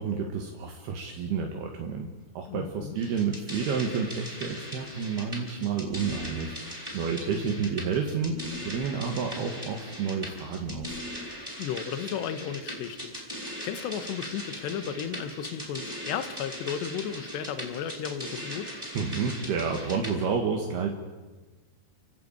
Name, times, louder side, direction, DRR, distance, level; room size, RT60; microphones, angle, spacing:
voice 1, 0.0-2.1 2.4-11.0 18.9-20.9, right 6 dB, 70° right, 2 dB, 3.6 m, -30 dB
voice 2, 2.5-3.0 11.6-18.7, left 8 dB, 80° left, 11 dB, 3.4 m, -34 dB
sound 1, 2.9-20.1, equal, 5° right, 5.6 m, -40 dB
sound 2, 5.8-6.6 8.2-9.1 10.6-11.3, left 2 dB, 10° left, 1.1 m, -43 dB
30.0 x 16.0 x 8.9 m, 1.2 s
omnidirectional pair, 4.9 m